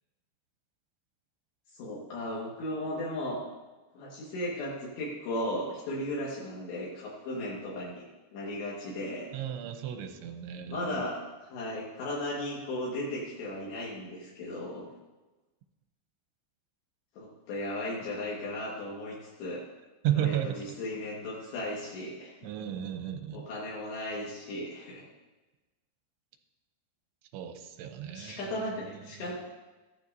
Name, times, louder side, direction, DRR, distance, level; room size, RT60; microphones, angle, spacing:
voice 1, 1.7-3.4 4.0-8.0 8.3-9.3 10.7-11.2 11.5-14.9 17.2-19.6 20.1-22.5 23.3-25.1 28.1-29.4, left 1 dB, 75° left, -5 dB, 3.8 m, -36 dB
voice 2, 9.3-11.0 20.0-20.5 22.4-23.5 27.3-28.5 29.1-29.4, right 11 dB, 85° right, 6 dB, 3.0 m, -33 dB
14.5 x 12.0 x 2.7 m, 1.2 s
omnidirectional pair, 5.2 m